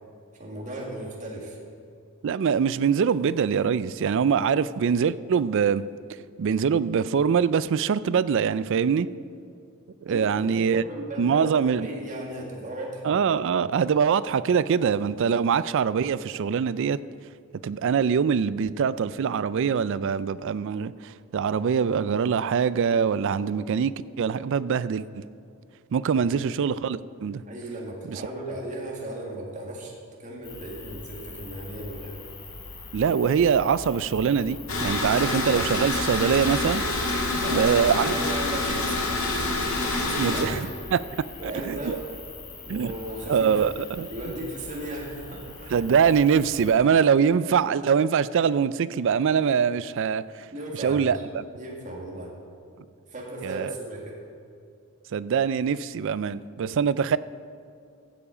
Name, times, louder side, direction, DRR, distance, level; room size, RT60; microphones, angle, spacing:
voice 1, 0.4-1.6 10.1-13.1 26.2-26.4 27.5-32.2 37.3-39.2 39.8-40.6 41.4-42.0 42.6-43.6 44.1-45.8 50.5-51.2 51.6-52.3 53.1-54.2, right 1 dB, 35° right, -2 dB, 1.8 m, -36 dB
voice 2, 2.2-5.8 6.4-9.1 10.0-10.8 11.2-11.9 13.0-17.0 17.6-25.2 25.9-27.4 28.1-28.2 32.9-36.8 37.5-38.2 40.2-42.0 42.7-42.9 43.3-44.1 45.7-50.2 50.8-51.4 53.4-53.7 55.1-57.2, right 7 dB, 60° right, 17 dB, 0.3 m, -23 dB
sound 1, 30.4-46.7, left 3 dB, 90° left, 3.2 m, -43 dB
sound 2, 34.7-40.4, left 2 dB, 65° left, 1.9 m, -27 dB
15.5 x 7.1 x 5.0 m, 2.4 s
head